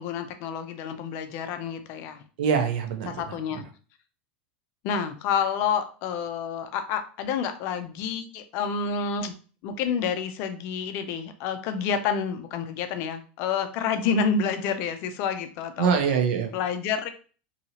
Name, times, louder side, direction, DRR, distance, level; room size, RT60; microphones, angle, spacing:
voice 1, 0.0-2.2 3.1-3.7 4.8-9.3 9.6-16.0 16.5-17.1, left 6 dB, 50° left, 8 dB, 0.4 m, -29 dB
voice 2, 2.4-3.6 15.8-16.6, right 7 dB, 75° right, 5 dB, 0.7 m, -25 dB
2.8 x 2.7 x 2.8 m, 0.38 s
supercardioid pair, 150°, 5 cm